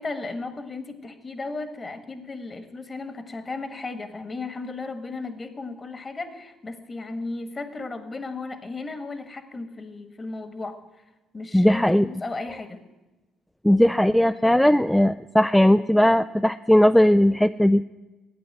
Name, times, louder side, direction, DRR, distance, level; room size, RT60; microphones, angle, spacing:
voice 1, 0.0-10.7 11.3-12.8, left 3 dB, 35° left, 10 dB, 1.6 m, -35 dB
voice 2, 11.5-12.1 13.6-17.8, left 1 dB, 5° left, 11 dB, 0.4 m, -18 dB
11.0 x 8.7 x 8.1 m, 1.1 s
hypercardioid pair, 55°, 0 cm